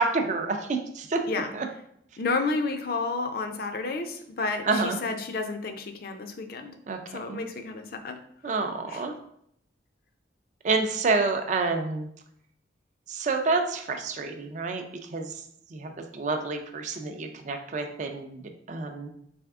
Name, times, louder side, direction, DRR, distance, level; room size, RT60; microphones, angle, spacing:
voice 1, 0.0-1.2 1.5-1.7 4.6-5.0 6.9-7.4 8.4-9.1 10.6-12.1 13.1-14.8 15.1-15.4 15.7-19.1, right 3 dB, 40° right, 5 dB, 0.4 m, -28 dB
voice 2, 2.2-6.7 7.1-8.2 8.9-9.0, left 3 dB, 55° left, 6 dB, 0.5 m, -31 dB
3.5 x 3.3 x 3.5 m, 0.70 s
head